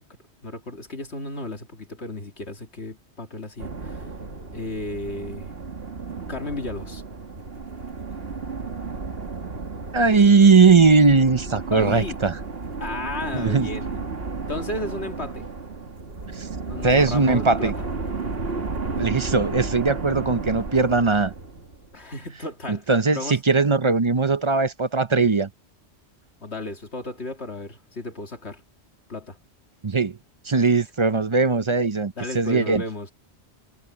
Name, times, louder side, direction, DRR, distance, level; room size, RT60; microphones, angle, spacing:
voice 1, 0.4-4.1 4.5-5.5 6.3-7.0 11.7-12.2 12.8-14.0 14.5-15.5 16.7-17.8 21.9-23.4 26.4-28.6 29.1-29.4 32.2-33.1, left 2 dB, 70° left, 2.7 m, -33 dB
sound 1, 3.6-22.0, right 4 dB, 60° right, 2.4 m, -33 dB
voice 2, 9.9-12.4 13.3-13.7 16.3-16.5 16.8-17.7 19.0-21.3 22.7-25.5 29.8-30.2 30.4-32.8, right 4 dB, 30° right, 0.7 m, -19 dB
omnidirectional pair, 1.1 m